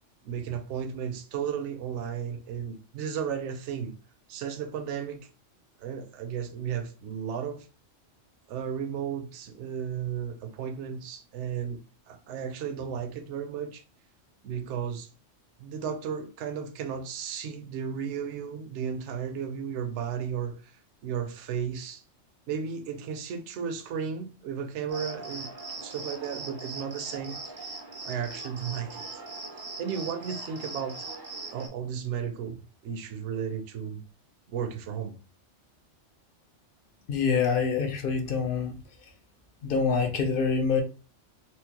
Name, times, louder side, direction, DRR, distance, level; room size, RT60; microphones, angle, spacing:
voice 1, 0.2-3.9 4.3-5.3 5.8-7.7 8.5-11.8 12.1-13.8 14.4-15.1 15.6-20.7 21.0-22.0 22.5-27.8 28.0-29.2 29.8-31.1 31.5-34.0 34.5-35.2, right 7 dB, 70° right, 0.9 m, -34 dB
Cricket, 24.9-31.7, right 3 dB, 40° right, 0.3 m, -40 dB
voice 2, 37.1-38.7 39.6-40.8, left 5 dB, 55° left, 0.7 m, -26 dB
4.3 x 2.0 x 2.8 m
omnidirectional pair, 1.3 m